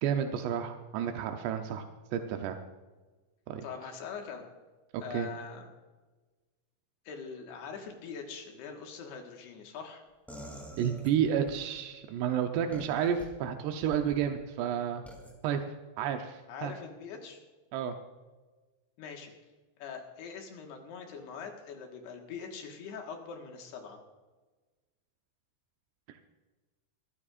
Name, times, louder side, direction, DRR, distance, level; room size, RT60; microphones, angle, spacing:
voice 1, 0.0-1.9 2.1-2.6 3.5-3.6 4.9-5.3 10.8-15.0 15.4-15.6 16.0-16.7 17.7-17.9, right 8 dB, 90° right, 5 dB, 3.0 m, -31 dB
voice 2, 3.6-4.5 5.0-5.7 7.1-10.0 16.5-17.4 19.0-19.3 19.8-24.0, left 6 dB, 75° left, 2 dB, 3.6 m, -43 dB
sound 1, 10.3-11.6 12.7-13.3 13.8-14.2 15.1-15.3, equal, ahead, 1.5 m, -46 dB
23.5 x 14.0 x 2.5 m, 1.2 s
omnidirectional pair, 4.8 m